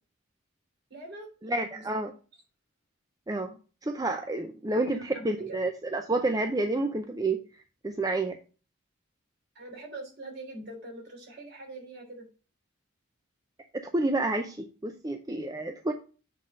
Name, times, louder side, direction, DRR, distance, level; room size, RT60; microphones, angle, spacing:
voice 1, 0.9-2.0 4.8-5.6 9.5-12.3, right 2 dB, 50° right, 0 dB, 3.1 m, -43 dB
voice 2, 1.4-2.1 3.3-3.5 3.8-7.4 7.8-8.4 13.9-15.9, right 2 dB, 20° right, 5 dB, 0.5 m, -29 dB
7.6 x 4.0 x 6.2 m, 0.36 s
head